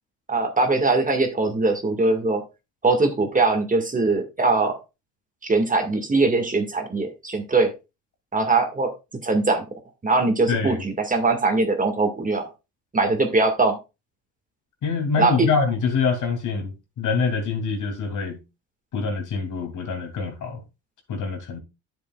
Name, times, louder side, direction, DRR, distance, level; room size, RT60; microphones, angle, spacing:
voice 1, 0.3-2.4 2.8-4.8 5.4-7.7 8.3-8.9 9.2-9.6 10.0-12.5 12.9-13.8 15.2-15.5, right 3 dB, 20° right, 2.0 m, -21 dB
voice 2, 10.5-10.8 14.8-18.4 18.9-20.6 21.1-21.6, left 5 dB, 55° left, 2.9 m, -25 dB
10.0 x 7.2 x 2.4 m
supercardioid pair, 80°, 35 cm